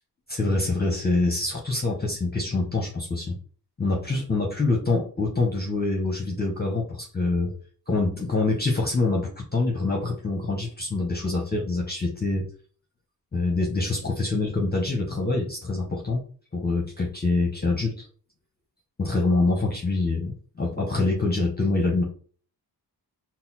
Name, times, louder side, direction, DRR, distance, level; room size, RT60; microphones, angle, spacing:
voice 1, 0.3-3.4 3.8-7.5 7.9-12.5 13.3-16.2 16.5-18.1 19.0-22.0, left 3 dB, 25° left, 0 dB, 0.9 m, -25 dB
4.1 x 2.1 x 4.1 m, 0.43 s
cardioid pair, 60°, 42 cm